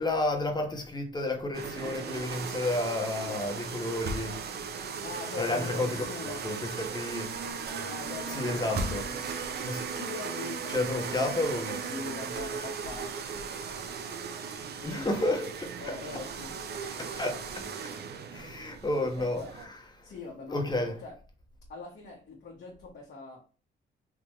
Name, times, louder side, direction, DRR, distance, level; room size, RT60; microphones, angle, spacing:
voice 1, 0.0-4.4 5.4-7.3 8.3-9.0 9.6-9.9 10.7-11.8 14.8-16.2 16.9-17.6 18.3-20.1 20.5-20.9, left 2 dB, 20° left, 1.2 m, -31 dB
sound 1, 1.5-19.7, right 5 dB, 55° right, 0.8 m, -37 dB
voice 2, 5.0-6.4 7.9-9.2 9.9-11.4 11.9-13.1 14.8-15.1 15.8-16.5 19.2-19.5 20.0-21.2 21.7-23.4, left 3 dB, 55° left, 1.3 m, -42 dB
3.6 x 2.9 x 3.1 m
cardioid pair, 90°, 20 cm